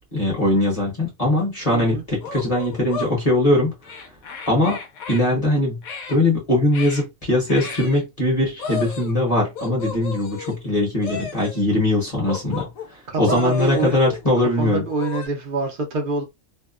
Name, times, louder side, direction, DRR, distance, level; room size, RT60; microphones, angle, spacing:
voice 1, 0.1-4.0 4.5-4.8 5.1-5.8 6.1-14.8, left 1 dB, 30° left, 1.0 m, -21 dB
sound 1, 1.4-1.5 2.2-3.2 3.8-5.2 5.8-6.2 6.7-7.1 7.5-8.0 8.6-9.2 9.6-10.6 11.0-11.6 12.2-12.9 13.2-14.3 14.8-15.3, left 5 dB, 90° left, 1.1 m, -33 dB
voice 2, 1.7-2.0 13.1-14.0 14.6-16.2, right 4 dB, 55° right, 0.6 m, -26 dB
2.7 x 2.1 x 2.3 m
omnidirectional pair, 1.4 m